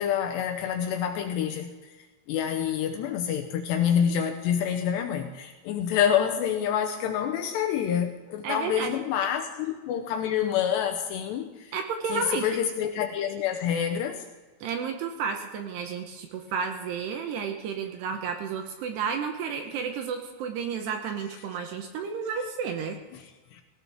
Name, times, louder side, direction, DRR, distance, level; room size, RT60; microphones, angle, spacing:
voice 1, 0.0-2.0 2.3-11.7 12.1-14.3 23.1-23.3 23.5-23.6, left 9 dB, 75° left, 5 dB, 2.7 m, -27 dB
voice 2, 8.4-8.9 11.7-12.5 14.6-23.0, right 6 dB, 75° right, 5 dB, 2.7 m, -32 dB
18.0 x 18.0 x 3.5 m, 1.2 s
omnidirectional pair, 5.6 m